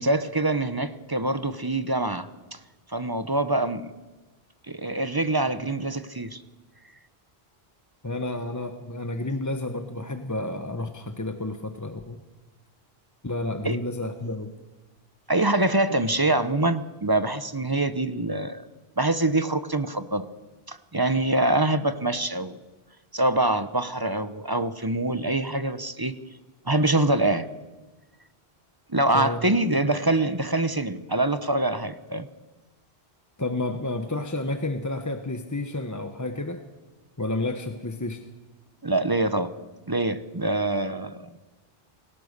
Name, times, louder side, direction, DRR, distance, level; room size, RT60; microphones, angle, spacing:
voice 1, 0.0-2.6 2.9-3.9 4.7-6.4 13.6-13.8 15.3-18.6 19.0-20.3 20.7-22.5 23.1-26.1 26.7-27.5 28.9-32.3 38.8-39.5 39.9-41.4, right 2 dB, 25° right, 12 dB, 0.9 m, -25 dB
voice 2, 8.0-12.2 13.2-14.5 15.9-16.0 29.1-29.4 33.4-36.6 37.2-38.2, left 2 dB, 20° left, 7 dB, 1.0 m, -30 dB
27.0 x 17.5 x 6.7 m, 1.2 s
omnidirectional pair, 1.0 m